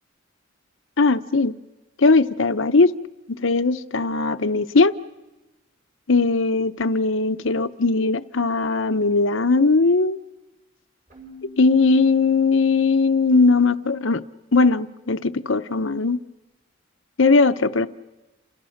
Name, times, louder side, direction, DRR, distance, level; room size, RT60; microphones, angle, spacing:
voice 1, 1.0-1.5 2.0-2.9 3.4-4.9 6.1-10.2 11.6-14.2 14.5-16.2 17.2-17.9, left 3 dB, 70° left, 11 dB, 0.9 m, -19 dB
Keyboard (musical), 11.1-12.9, left 2 dB, 40° right, 7.2 m, -47 dB
29.5 x 28.0 x 6.5 m, 1.1 s
head